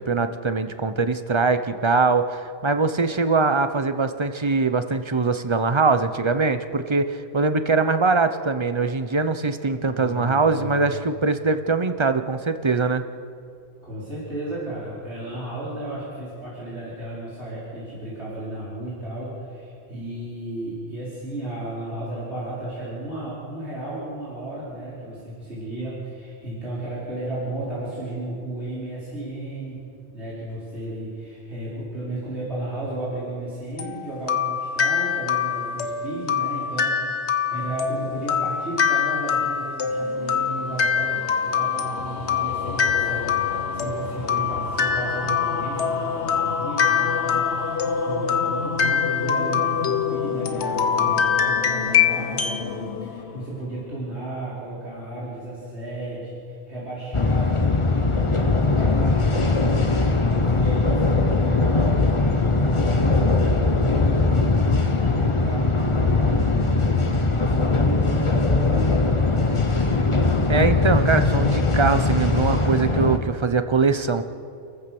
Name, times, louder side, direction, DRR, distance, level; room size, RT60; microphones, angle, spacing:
voice 1, 0.0-13.0 70.5-74.2, right 4 dB, 30° right, 10 dB, 0.9 m, -22 dB
voice 2, 9.9-10.9 13.8-29.8 30.1-69.9, right 1 dB, 90° right, -9 dB, 5.5 m, -34 dB
sound 1, 33.8-52.7, left 7 dB, 85° left, 1.5 m, -24 dB
sound 2, 39.9-54.3, left 6 dB, 65° left, 1.1 m, -32 dB
sound 3, 57.1-73.2, left 3 dB, 30° left, 1.3 m, -20 dB
29.5 x 14.5 x 6.1 m, 2.5 s
omnidirectional pair, 1.1 m